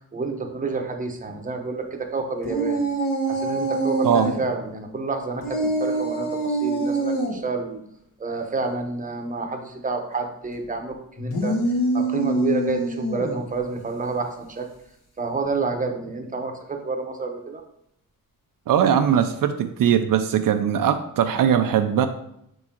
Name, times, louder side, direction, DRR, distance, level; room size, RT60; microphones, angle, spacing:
voice 1, 0.0-2.8 3.3-7.8 8.2-14.7 15.2-17.6, right 3 dB, 25° right, 3 dB, 0.8 m, -29 dB
sound 1, 2.4-4.4 5.4-7.4 11.2-13.4, right 2 dB, 65° left, 1.5 m, -25 dB
voice 2, 18.7-22.1, right 9 dB, 70° right, 7 dB, 0.5 m, -20 dB
6.1 x 3.6 x 4.3 m, 0.76 s
wide cardioid pair, 145°, 35 cm